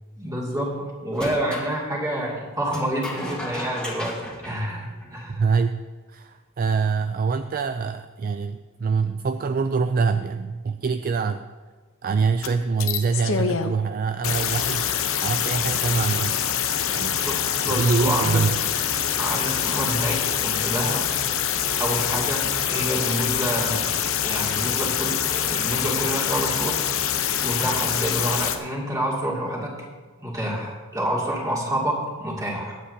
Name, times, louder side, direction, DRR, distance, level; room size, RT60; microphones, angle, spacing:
voice 1, 0.2-5.4 17.2-18.4 19.2-21.1 21.8-23.9 24.2-26.8 27.4-29.7 30.2-32.8, right 1 dB, 15° right, -3 dB, 2.6 m, -28 dB
sound 1, 1.1-1.7 2.7-5.4, equal, 5° left, 1.9 m, -35 dB
voice 2, 5.3-5.8 6.1-11.4 12.0-14.9 15.2-16.4 16.9-17.2 17.7-18.6, right 5 dB, 40° right, 9 dB, 0.4 m, -24 dB
sound 2, 12.4-12.5 12.8-13.7 14.2-28.6, left 9 dB, 65° left, 0.9 m, -25 dB
22.0 x 8.6 x 2.8 m, 1.4 s
head